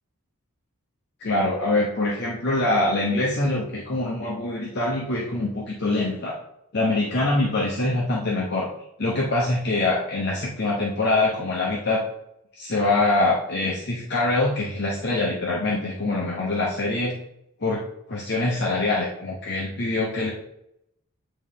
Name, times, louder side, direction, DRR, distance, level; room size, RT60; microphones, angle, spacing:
voice 1, 1.2-6.4 6.7-8.7 9.0-12.0 12.6-17.1 17.6-17.8 18.1-20.3, left 2 dB, 50° left, -4 dB, 0.9 m, -24 dB
8.9 x 3.0 x 3.6 m, 0.79 s
head